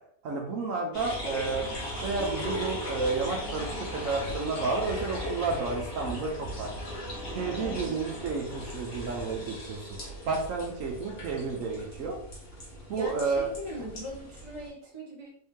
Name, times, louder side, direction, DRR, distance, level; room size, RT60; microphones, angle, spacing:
voice 1, 0.2-1.7 2.0-6.7 7.3-9.8 10.3-12.2 12.9-13.5, right 4 dB, 65° right, 1 dB, 1.0 m, -31 dB
sound 1, 0.9-14.7, equal, 75° left, 1.9 m, -37 dB
voice 2, 7.6-8.0 12.9-15.3, equal, 25° right, -5 dB, 0.9 m, -40 dB
3.8 x 2.7 x 3.5 m, 0.65 s
omnidirectional pair, 1.6 m